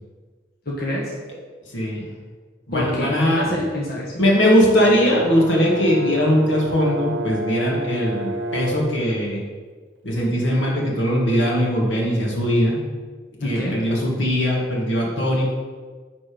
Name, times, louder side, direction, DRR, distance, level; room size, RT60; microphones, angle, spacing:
voice 1, 0.6-1.1 2.7-4.1 13.4-13.8, left 1 dB, 55° left, -4 dB, 1.3 m, -26 dB
voice 2, 1.7-2.1 2.7-3.5 4.1-9.4 10.0-12.8 13.4-15.5, equal, 90° left, -2 dB, 2.0 m, -20 dB
Brass instrument, 4.8-8.9, right 2 dB, 75° right, 0.7 m, -30 dB
9.4 x 4.2 x 5.2 m, 1.5 s
head